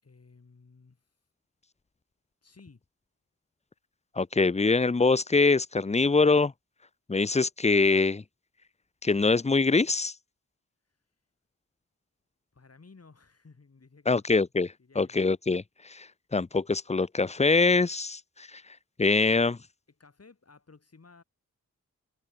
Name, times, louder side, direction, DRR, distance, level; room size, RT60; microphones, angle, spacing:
voice 1, 0.0-1.1 2.4-2.8 12.5-14.3 14.8-15.2 19.9-21.2, left 4 dB, 45° left, 5.9 m, -55 dB
voice 2, 4.2-6.5 7.1-8.2 9.0-10.1 14.1-15.6 15.9-18.2 18.5-18.6 19.0-19.6, left 3 dB, 20° left, 0.7 m, -24 dB
cardioid pair, 60°, 33 cm